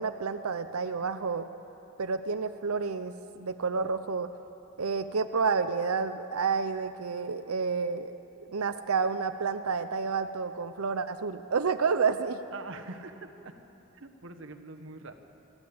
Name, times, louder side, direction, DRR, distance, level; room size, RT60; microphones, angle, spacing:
voice 1, 0.0-1.5 2.0-4.3 4.8-8.1 8.4-12.4, right 5 dB, 80° right, 9 dB, 0.7 m, -30 dB
voice 2, 12.5-13.6 13.9-15.1, right 3 dB, 60° right, 6 dB, 1.3 m, -44 dB
27.0 x 12.5 x 8.6 m, 3.0 s
head